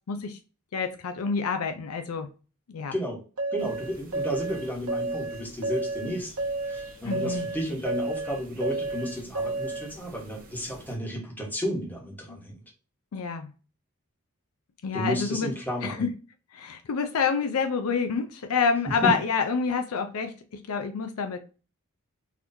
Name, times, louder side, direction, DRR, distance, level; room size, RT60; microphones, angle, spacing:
voice 1, 0.1-0.4 0.7-2.3 2.7-2.9 7.0-7.5 12.3-12.4 13.1-13.5 14.8-15.5 15.8-16.1 16.5-20.3 20.7-21.4, left 5 dB, 70° left, 0.5 m, -27 dB
voice 2, 2.9-3.2 3.5-6.3 6.7-12.6 14.9-16.1 18.9-19.2, equal, 10° left, 1.1 m, -32 dB
sound 1, 3.4-9.9, right 2 dB, 90° right, 0.9 m, -31 dB
sound 2, 3.6-11.0, right 2 dB, 40° right, 1.1 m, -51 dB
3.9 x 3.0 x 2.6 m
head